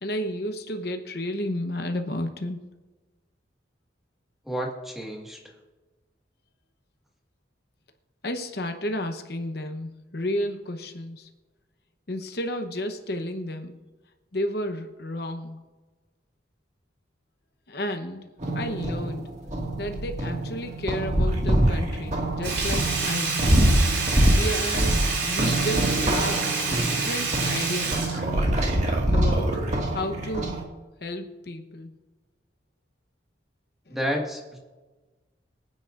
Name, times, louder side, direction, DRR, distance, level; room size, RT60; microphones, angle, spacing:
voice 1, 0.0-2.6 8.2-11.3 12.1-13.8 14.3-15.6 17.7-18.3 18.5-19.4 19.8-23.6 24.3-26.5 26.8-28.2 29.1-29.6 29.9-30.6 31.0-31.9 33.9-34.0, left 1 dB, 55° left, 6 dB, 0.9 m, -32 dB
voice 2, 4.5-5.4 33.9-34.6, equal, ahead, -1 dB, 1.7 m, -30 dB
sound 1, 18.4-30.6, right 1 dB, 40° right, 1.9 m, -25 dB
Sink (filling or washing), 22.4-29.0 29.3-29.4, right 4 dB, 65° right, 3.8 m, -28 dB
23.5 x 9.8 x 2.5 m, 1.2 s
head